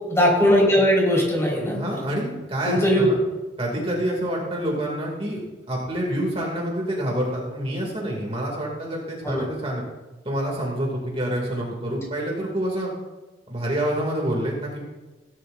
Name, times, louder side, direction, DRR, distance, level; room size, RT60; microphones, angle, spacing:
voice 1, 0.1-1.8 2.6-3.1 9.2-9.4, equal, 15° left, -4 dB, 4.6 m, -19 dB
voice 2, 1.7-3.2 3.6-5.4 5.7-9.8 10.2-12.9 13.5-14.8, right 1 dB, 35° right, -2 dB, 2.5 m, -27 dB
17.0 x 12.0 x 2.6 m, 1.2 s
head